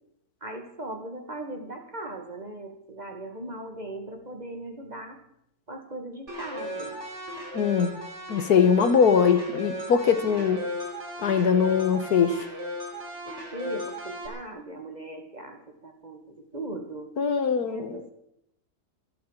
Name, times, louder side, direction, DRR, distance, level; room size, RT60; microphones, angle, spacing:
voice 1, 0.4-5.2 5.7-7.0 13.2-17.1 17.6-18.1, right 1 dB, 30° right, 4 dB, 2.1 m, -39 dB
sound 1, 6.3-14.3, equal, 50° right, 3.8 m, -36 dB
voice 2, 7.5-8.0 8.3-10.7 11.2-12.4 17.2-17.9, left 6 dB, 85° left, 10 dB, 1.8 m, -22 dB
14.5 x 12.5 x 7.4 m, 0.76 s
omnidirectional pair, 1.6 m